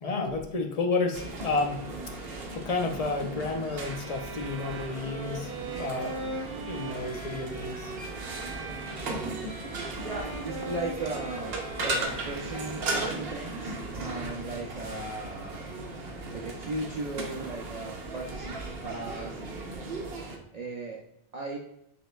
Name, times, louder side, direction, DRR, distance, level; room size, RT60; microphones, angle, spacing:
voice 1, 0.0-1.9 2.5-6.1 6.7-7.9, left 3 dB, 45° left, 3 dB, 0.5 m, -31 dB
sound 1, 1.1-20.4, right 2 dB, 70° right, 0.9 m, -37 dB
sound 2, 3.8-13.3, right 2 dB, 90° right, 1.2 m, -40 dB
voice 2, 10.0-15.7 16.3-18.6 18.8-19.4 20.5-21.0 21.3-21.6, right 2 dB, 50° right, -2 dB, 0.5 m, -37 dB
5.5 x 3.1 x 2.2 m, 0.74 s
omnidirectional pair, 1.1 m